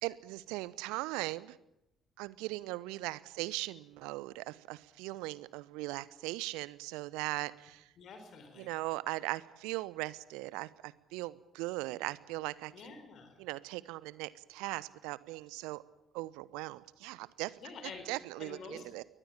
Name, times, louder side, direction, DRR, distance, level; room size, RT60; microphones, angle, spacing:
voice 1, 0.0-1.6 2.2-7.9 8.6-13.0 13.4-15.8 16.1-17.6 18.1-19.0, right 20 dB, 65° right, 20 dB, 0.9 m, -39 dB
voice 2, 8.0-8.7 12.7-13.4 17.6-18.1 18.4-18.8, left 5 dB, 50° left, 6 dB, 4.8 m, -48 dB
23.0 x 19.5 x 8.8 m, 0.85 s
figure-of-eight pair, 45°, 0 cm